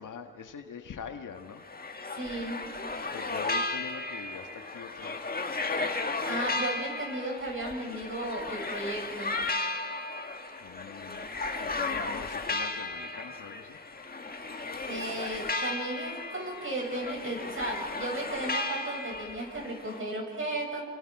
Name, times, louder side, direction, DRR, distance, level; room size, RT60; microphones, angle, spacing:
voice 1, 0.0-1.7 3.1-5.3 10.6-11.3 11.6-13.8, left 6 dB, 75° left, 5 dB, 1.9 m, -43 dB
sound 1, 1.4-20.0, left 3 dB, 30° left, 1.7 m, -35 dB
voice 2, 2.1-2.6 6.3-9.3 14.9-20.8, right 2 dB, 40° right, 0 dB, 7.5 m, -35 dB
29.5 x 25.0 x 4.9 m, 1.5 s
cardioid pair, 85°, 31 cm